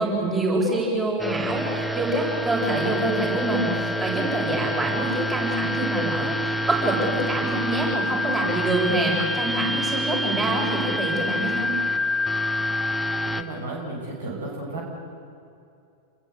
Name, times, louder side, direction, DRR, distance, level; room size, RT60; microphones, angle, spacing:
voice 1, 0.0-11.7, right 2 dB, 20° right, -2 dB, 7.4 m, -26 dB
sound 1, 1.2-13.4, left 1 dB, 5° right, 1.1 m, -27 dB
voice 2, 13.2-14.9, right 2 dB, 65° right, -1 dB, 6.6 m, -33 dB
29.0 x 21.0 x 8.3 m, 2.5 s
figure-of-eight pair, 90°, 0 cm